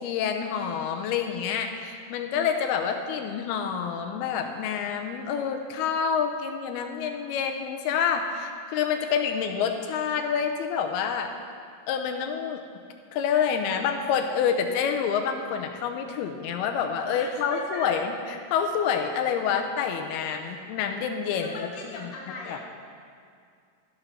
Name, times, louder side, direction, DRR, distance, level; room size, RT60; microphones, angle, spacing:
voice 1, 0.0-11.3 11.9-12.6 13.1-18.1 18.5-22.1 22.5-22.6, left 7 dB, 90° left, 5 dB, 2.7 m, -27 dB
voice 2, 17.1-18.0 20.4-20.6 21.4-22.6, left 2 dB, 70° left, -3 dB, 0.8 m, -38 dB
13.5 x 6.9 x 5.7 m, 2.3 s
omnidirectional pair, 4.5 m